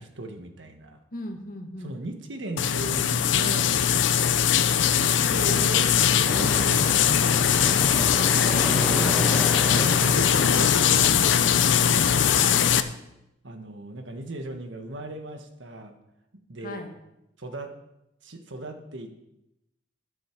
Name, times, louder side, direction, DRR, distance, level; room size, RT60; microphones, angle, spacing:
voice 1, 0.0-1.0 1.8-3.7 5.0-5.9 6.2-6.8 7.2-7.6 8.8-11.6 13.4-15.9 16.5-16.9 17.4-17.8 18.2-19.2, right 1 dB, 80° right, 6 dB, 1.4 m, -37 dB
voice 2, 1.1-2.0 6.6-6.8 12.3-12.8 16.6-16.9, left 2 dB, 50° left, 3 dB, 1.7 m, -37 dB
sound 1, 2.6-12.8, left 8 dB, 75° left, 0.6 m, -21 dB
sound 2, 6.2-12.3, equal, 5° left, 1.5 m, -34 dB
12.5 x 10.5 x 4.5 m, 0.87 s
head